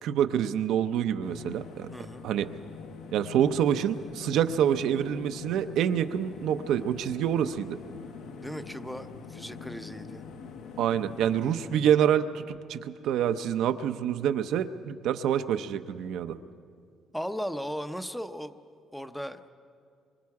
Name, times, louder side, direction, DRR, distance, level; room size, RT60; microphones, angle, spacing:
voice 1, 0.0-1.9 2.2-2.5 3.1-7.8 10.8-16.4, right 9 dB, 75° right, 9 dB, 0.7 m, -27 dB
sound 1, 1.2-11.8, left 6 dB, 75° left, 1.1 m, -44 dB
voice 2, 1.9-2.3 8.4-10.2 17.1-18.6 18.9-19.4, equal, ahead, 10 dB, 0.6 m, -37 dB
25.0 x 24.0 x 4.8 m, 2.3 s
cardioid pair, 155°, 0 cm